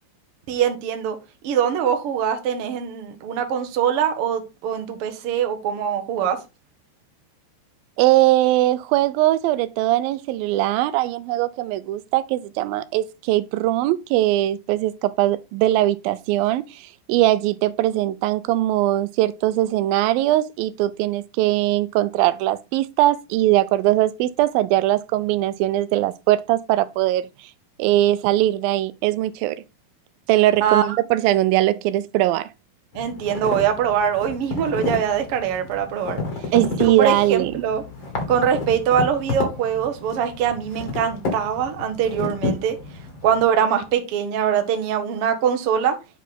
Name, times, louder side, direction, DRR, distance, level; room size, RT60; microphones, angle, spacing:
voice 1, 0.5-1.2 1.4-6.4 30.6-31.0 32.9-36.2 37.0-37.8 38.3-42.8 43.2-46.0, right 8 dB, 70° right, 1.4 m, -23 dB
voice 2, 8.0-27.3 27.8-29.6 30.3-32.5 36.5-37.7, right 15 dB, 85° right, 2.3 m, -20 dB
sound 1, 32.9-43.4, left 3 dB, 40° left, 2.1 m, -31 dB
8.1 x 4.8 x 3.8 m
omnidirectional pair, 4.1 m